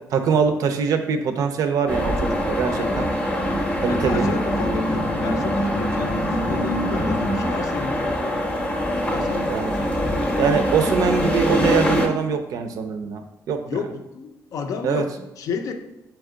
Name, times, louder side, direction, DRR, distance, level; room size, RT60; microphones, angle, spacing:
voice 1, 0.1-3.1 3.8-4.3 9.5-9.7 10.4-13.6 14.8-15.0, right 6 dB, 65° right, 7 dB, 0.4 m, -23 dB
sound 1, 1.9-12.1, equal, 20° left, 0.6 m, -23 dB
voice 2, 2.7-3.2 3.9-8.5 9.1-10.4 13.7-15.7, left 5 dB, 65° left, 6 dB, 0.5 m, -32 dB
3.5 x 3.0 x 3.7 m, 0.93 s
cardioid pair, 90°, 6 cm